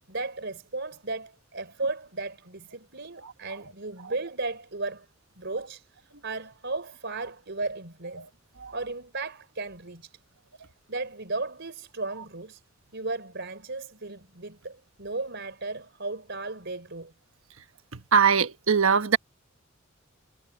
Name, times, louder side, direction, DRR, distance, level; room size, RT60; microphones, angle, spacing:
voice 1, 0.1-5.1 5.4-5.9 6.2-8.3 8.7-10.2 10.9-12.6 12.9-17.1, right 3 dB, 60° right, 4.1 m, -35 dB
voice 2, 18.1-19.2, right 6 dB, 80° right, 1.3 m, -21 dB
head